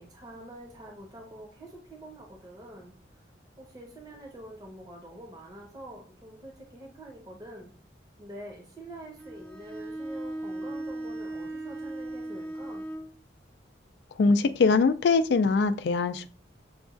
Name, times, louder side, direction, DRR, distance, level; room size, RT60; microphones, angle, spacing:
voice 1, 0.0-3.0 3.6-7.7 8.2-12.8, right 1 dB, 20° right, 0 dB, 0.8 m, -46 dB
Bowed string instrument, 9.2-13.1, right 1 dB, 5° left, 0.5 m, -37 dB
voice 2, 14.2-16.3, left 4 dB, 60° left, 11 dB, 0.3 m, -22 dB
6.9 x 2.3 x 2.5 m, 0.39 s
head